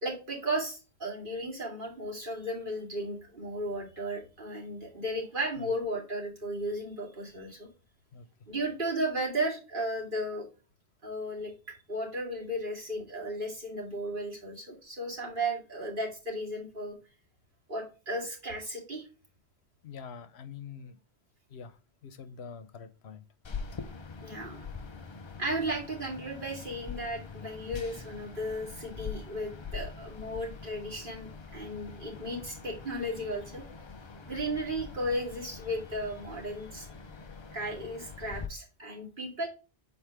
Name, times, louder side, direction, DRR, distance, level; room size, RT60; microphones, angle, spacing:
voice 1, 0.0-7.7 8.5-10.5 11.0-11.5 11.9-17.0 17.7-19.0 24.2-24.6 25.4-33.6 34.3-36.9 37.5-39.5, right 1 dB, 55° right, -2 dB, 2.6 m, -35 dB
voice 2, 19.8-21.0 21.5-23.2, left 6 dB, 80° left, 11 dB, 1.1 m, -45 dB
sound 1, 23.4-38.5, left 5 dB, 35° left, 0.6 m, -44 dB
7.4 x 4.3 x 3.3 m, 0.31 s
omnidirectional pair, 1.1 m